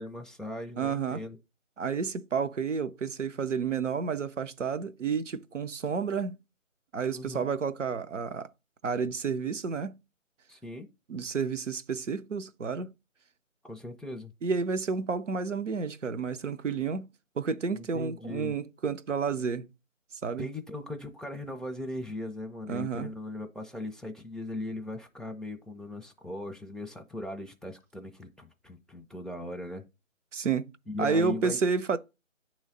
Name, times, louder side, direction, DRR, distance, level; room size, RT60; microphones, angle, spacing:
voice 1, 0.0-1.4 7.1-7.5 10.5-10.9 13.6-14.3 17.7-18.5 20.4-29.9 30.9-31.6, left 1 dB, ahead, 0.4 m, -39 dB
voice 2, 0.8-1.2 1.8-6.4 6.9-8.5 8.8-10.0 11.1-12.9 14.4-17.1 17.4-19.7 20.2-20.5 22.7-23.1 30.3-30.7 31.0-32.0, right 5 dB, 65° right, 0.6 m, -30 dB
9.1 x 3.1 x 3.7 m
figure-of-eight pair, 170°, 40 cm